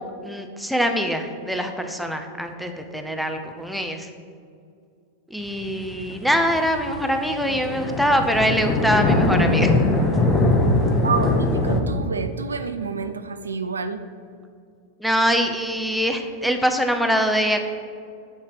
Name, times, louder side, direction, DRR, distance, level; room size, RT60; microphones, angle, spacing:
voice 1, 0.0-4.1 5.3-9.7 15.0-17.7, equal, ahead, 5 dB, 0.6 m, -23 dB
sound 1, 5.6-11.8, left 2 dB, 20° left, 1.0 m, -21 dB
voice 2, 11.0-14.0, right 5 dB, 75° right, 9 dB, 0.4 m, -28 dB
8.5 x 3.2 x 6.0 m, 2.3 s
figure-of-eight pair, 90°, 0 cm